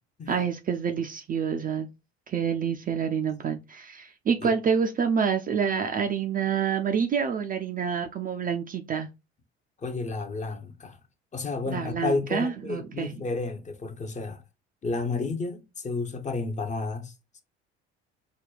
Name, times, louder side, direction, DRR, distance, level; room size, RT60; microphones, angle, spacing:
voice 1, 0.3-1.9 2.3-9.1 11.7-13.1, right 6 dB, 25° right, 0.4 m, -27 dB
voice 2, 9.8-11.0 11.3-14.4 14.8-17.1, left 3 dB, 20° left, 0.7 m, -31 dB
5.1 x 2.2 x 2.3 m
figure-of-eight pair, 60°, 32 cm